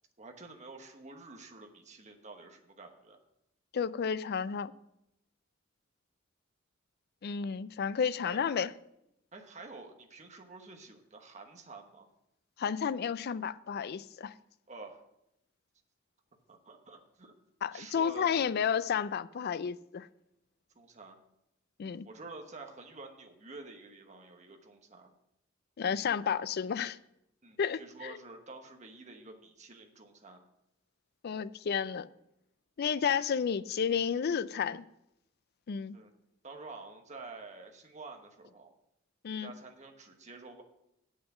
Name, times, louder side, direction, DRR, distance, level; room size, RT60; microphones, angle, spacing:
voice 1, 0.2-3.2 8.2-8.4 9.3-12.1 14.7-15.0 16.5-17.3 17.7-18.5 20.7-21.2 22.0-25.1 27.4-30.4 35.9-36.1 36.4-38.7 39.3-40.6, right 3 dB, 35° right, 1.2 m, -49 dB
voice 2, 3.7-4.7 7.2-8.7 12.6-14.3 17.6-20.1 21.8-22.1 25.8-27.0 27.6-28.2 31.2-32.1 32.8-34.8 35.7-36.0 39.2-39.5, left 7 dB, 50° left, 0.4 m, -31 dB
8.3 x 6.3 x 7.2 m
head